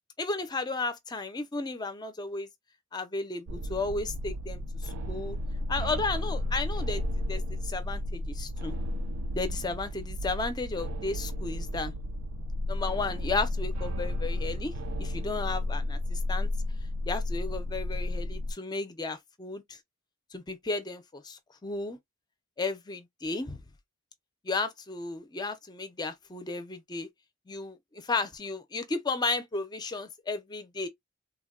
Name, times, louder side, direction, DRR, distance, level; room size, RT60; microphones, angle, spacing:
voice 1, 0.2-2.5 2.9-5.4 5.7-7.0 7.3-8.7 9.3-11.9 12.7-14.7 15.0-16.5 17.1-19.8 20.3-22.0 22.6-23.6 24.4-27.1 27.5-30.9, left 3 dB, 20° left, 0.4 m, -34 dB
sound 1, 3.5-18.5, left 1 dB, 90° right, 0.4 m, -33 dB
3.4 x 2.1 x 2.3 m
head